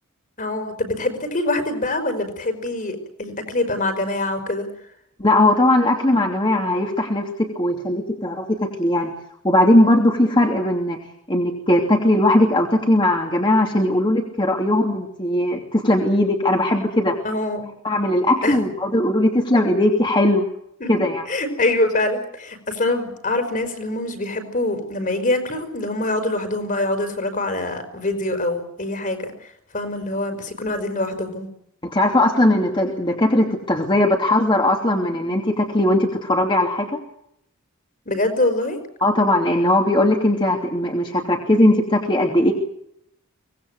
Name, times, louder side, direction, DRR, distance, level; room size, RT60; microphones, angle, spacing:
voice 1, 0.4-4.7 17.2-17.7 18.4-18.6 20.8-20.9 21.3-29.3 29.7-31.5 38.1-38.8, left 2 dB, 40° left, 8 dB, 5.3 m, -24 dB
voice 2, 5.2-9.1 9.4-11.0 11.3-17.2 17.8-20.4 20.9-21.2 31.8-37.0 39.0-42.5, left 1 dB, 25° left, 1 dB, 2.9 m, -19 dB
24.5 x 19.5 x 8.0 m, 0.75 s
head